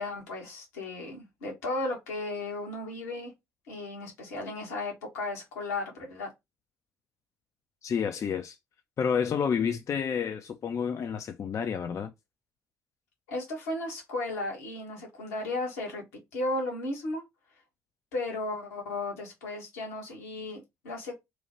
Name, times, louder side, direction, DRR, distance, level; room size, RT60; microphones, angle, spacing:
voice 1, 0.0-3.3 3.7-6.3 13.3-16.0 16.3-17.2 18.1-21.2, left 2 dB, 75° left, 1.1 m, -35 dB
voice 2, 7.8-8.6 9.0-12.1, left 7 dB, 35° left, 0.4 m, -29 dB
3.0 x 2.2 x 2.8 m
figure-of-eight pair, 45°, 8 cm